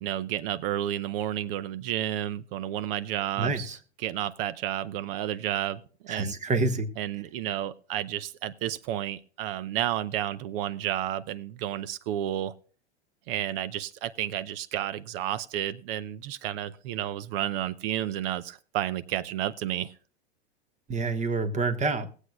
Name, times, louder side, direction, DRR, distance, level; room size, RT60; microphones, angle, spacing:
voice 1, 0.0-3.7 4.0-6.4 7.0-12.5 13.3-19.9, right 12 dB, 55° right, 16 dB, 0.7 m, -31 dB
voice 2, 3.4-3.8 6.1-6.9 20.9-22.1, right 3 dB, 20° right, 9 dB, 1.4 m, -27 dB
20.5 x 8.1 x 2.3 m, 0.40 s
hypercardioid pair, 105°, 34 cm